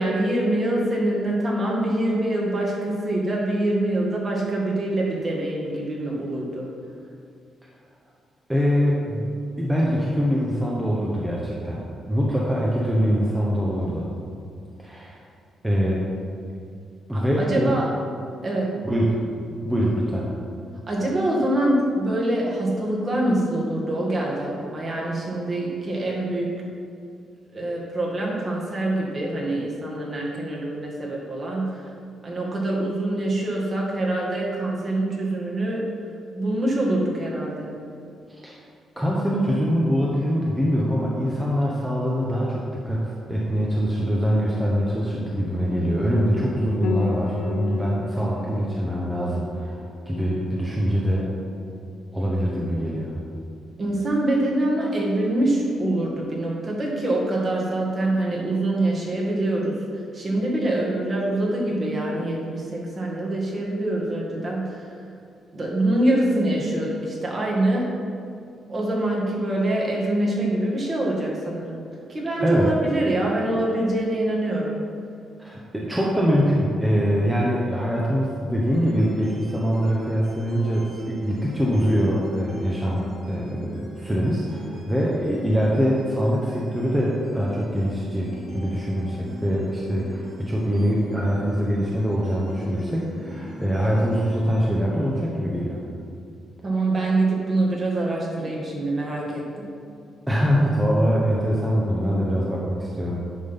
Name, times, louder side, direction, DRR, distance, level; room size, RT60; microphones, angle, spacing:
voice 1, 0.0-6.7 17.1-17.9 18.4-18.8 20.9-26.5 27.5-31.9 32.2-35.9 36.3-37.7 53.8-59.8 60.1-64.9 65.5-67.9 68.7-71.8 72.1-74.8 96.6-99.7, right 1 dB, 35° right, -3 dB, 1.9 m, -25 dB
voice 2, 8.5-9.3 9.6-11.8 12.1-14.1 14.8-15.2 15.6-16.1 17.1-17.8 18.8-19.2 19.4-20.3 38.3-38.5 39.0-49.8 50.1-51.3 52.1-53.1 72.4-72.7 75.4-95.8 100.3-103.2, equal, 5° right, -5 dB, 1.0 m, -23 dB
Piano, 46.8-56.2, left 5 dB, 70° left, 0.5 m, -37 dB
sound 1, 78.7-94.7, equal, 65° right, 1.7 m, -41 dB
10.5 x 3.8 x 5.5 m, 2.3 s
cardioid pair, 105°, 0 cm